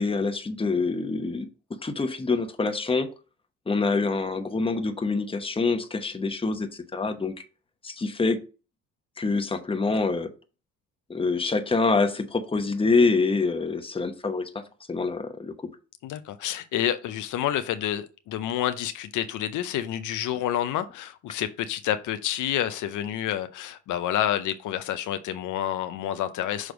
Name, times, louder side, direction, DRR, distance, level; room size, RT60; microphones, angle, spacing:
voice 1, 0.0-1.5 1.8-3.1 3.7-7.4 7.8-8.4 9.2-10.3 11.1-14.6 14.9-15.7, left 3 dB, 20° left, 0.9 m, -26 dB
voice 2, 16.0-26.7, left 11 dB, 80° left, 0.6 m, -29 dB
6.3 x 3.3 x 5.1 m
cardioid pair, 90°, 30 cm